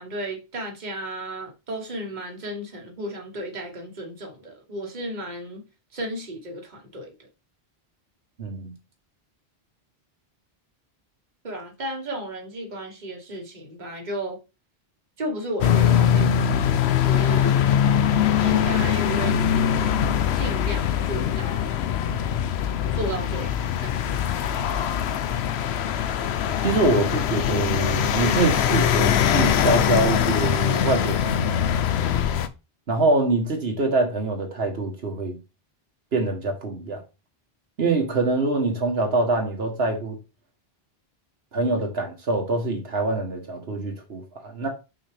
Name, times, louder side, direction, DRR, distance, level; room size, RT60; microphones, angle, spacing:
voice 1, 0.0-5.6 5.9-7.3 11.4-14.4 15.2-17.7 18.4-19.9 20.3-21.8 22.9-24.3, right 1 dB, 45° right, 1.5 m, -34 dB
voice 2, 8.4-8.7 26.6-31.6 32.9-35.4 36.1-37.0 37.8-40.2 41.5-44.7, right 2 dB, 75° right, 1.5 m, -24 dB
sound 1, 15.6-32.5, left 9 dB, 90° left, 0.9 m, -22 dB
5.8 x 5.0 x 3.4 m
omnidirectional pair, 1.1 m